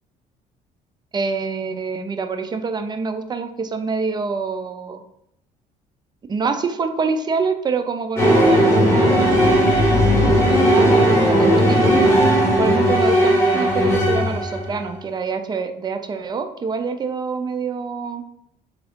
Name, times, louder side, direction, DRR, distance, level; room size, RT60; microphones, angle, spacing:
voice 1, 1.1-5.0 6.3-9.6 10.7-11.9 12.6-18.2, right 5 dB, 25° right, 7 dB, 0.4 m, -26 dB
sound 1, 8.2-14.7, equal, 15° left, 1.7 m, -16 dB
3.5 x 3.5 x 3.6 m, 0.75 s
cardioid pair, 110°, 17 cm